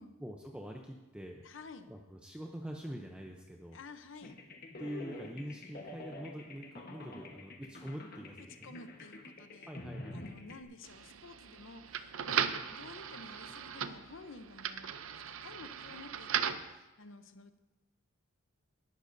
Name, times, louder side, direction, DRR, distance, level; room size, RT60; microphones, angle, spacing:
voice 1, 0.2-1.5 1.9-3.8 4.8-8.8 9.7-10.6, equal, 5° right, 1 dB, 0.6 m, -45 dB
voice 2, 1.4-1.9 3.7-4.4 8.6-9.7 10.1-14.9 15.3-17.5, left 3 dB, 65° left, 9 dB, 0.8 m, -51 dB
sound 1, 4.2-10.6, left 2 dB, 45° left, 1.3 m, -47 dB
sound 2, 10.8-16.7, right 8 dB, 80° right, 0.6 m, -38 dB
20.0 x 11.5 x 2.7 m, 1.1 s
head